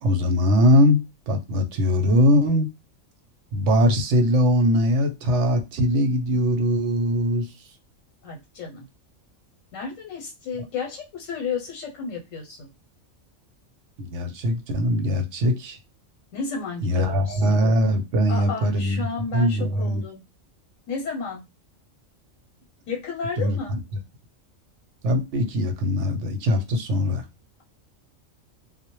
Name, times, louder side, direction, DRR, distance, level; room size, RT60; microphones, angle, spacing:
voice 1, 0.0-2.7 3.5-7.5 14.0-15.8 16.8-19.0 19.3-20.0 23.4-23.8 25.0-27.3, equal, 70° right, 0.8 m, -21 dB
voice 2, 8.2-8.9 9.7-12.7 16.3-17.4 18.3-20.2 20.9-21.4 22.9-23.7, left 5 dB, 85° left, 1.0 m, -32 dB
2.1 x 2.0 x 2.9 m
omnidirectional pair, 1.3 m